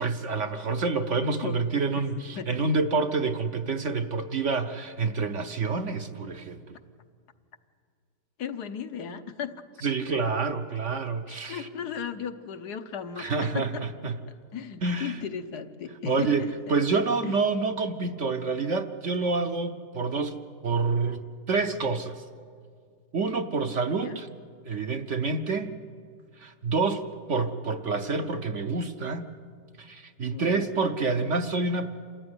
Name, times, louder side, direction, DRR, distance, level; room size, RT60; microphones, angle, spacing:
voice 1, 0.0-6.6 9.8-11.7 13.2-14.2 14.8-15.2 16.0-20.4 20.6-22.2 23.1-24.3 24.7-25.8 26.4-27.0 27.3-29.3 29.8-31.9, right 4 dB, 55° right, 7 dB, 1.0 m, -28 dB
voice 2, 8.4-9.6 11.3-13.8 14.5-17.3 24.0-24.2 30.3-30.7, left 7 dB, 75° left, 8 dB, 1.5 m, -36 dB
27.5 x 14.0 x 9.7 m, 2.1 s
omnidirectional pair, 1.8 m